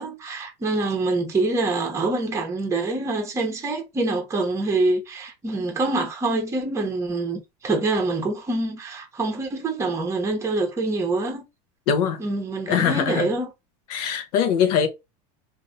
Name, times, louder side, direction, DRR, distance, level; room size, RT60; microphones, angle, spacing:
voice 1, 0.0-11.5 12.2-13.5, right 2 dB, 15° right, 0.9 m, -25 dB
voice 2, 11.9-12.2 12.7-13.3 13.9-14.9, left 8 dB, 70° left, 0.9 m, -22 dB
3.1 x 2.6 x 2.7 m
supercardioid pair, 150°, 20 cm